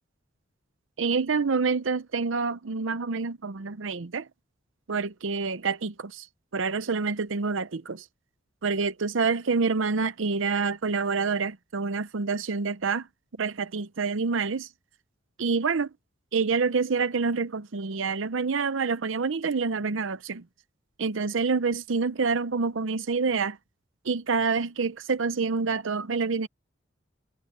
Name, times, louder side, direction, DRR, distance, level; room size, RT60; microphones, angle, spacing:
voice 1, 1.0-4.3 4.9-6.3 6.5-8.0 8.6-13.1 13.4-14.7 15.4-15.9 16.3-20.4 21.0-23.6 24.0-26.5, right 4 dB, 90° right, 0.7 m, -27 dB
head